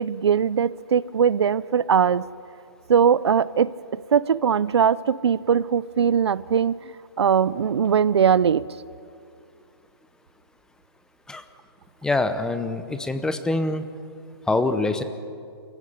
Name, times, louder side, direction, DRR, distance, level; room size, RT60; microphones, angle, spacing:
voice 1, 0.0-2.2 2.9-6.7 7.2-8.6, right 7 dB, 80° right, 19 dB, 0.6 m, -20 dB
voice 2, 12.0-13.8 14.5-15.0, left 2 dB, 5° left, 10 dB, 0.8 m, -24 dB
28.5 x 15.5 x 6.7 m, 2.3 s
hypercardioid pair, 145°, 14 cm